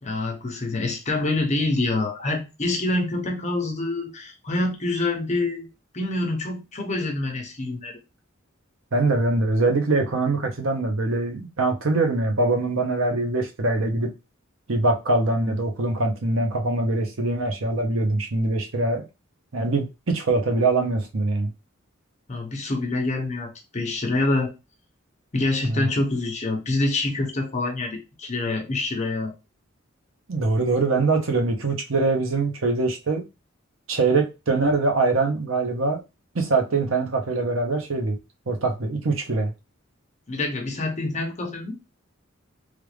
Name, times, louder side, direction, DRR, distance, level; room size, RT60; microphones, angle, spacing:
voice 1, 0.0-5.7 5.9-7.9 22.3-24.5 25.3-29.3 40.3-41.8, left 2 dB, 35° left, 0.8 m, -26 dB
voice 2, 8.9-14.1 14.7-19.0 19.5-21.5 25.6-25.9 30.3-33.2 33.9-36.0 36.3-38.2 38.5-39.5, right 3 dB, 75° right, 0.9 m, -23 dB
3.3 x 2.5 x 3.3 m
head